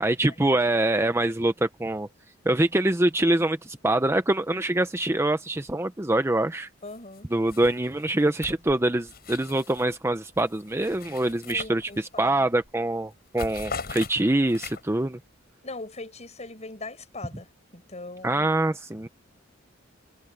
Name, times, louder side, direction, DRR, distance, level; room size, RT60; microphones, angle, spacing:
voice 1, 0.0-2.1 2.5-6.7 7.3-15.2 18.2-19.1, right 1 dB, 15° right, 0.7 m, -24 dB
voice 2, 6.8-7.3 11.5-12.5 15.6-18.5, left 2 dB, 35° left, 7.1 m, -40 dB
sound 1, 6.9-7.2 7.5-9.9 10.3-12.2 12.6-12.8 13.1-15.0, left 4 dB, 50° left, 7.4 m, -40 dB
head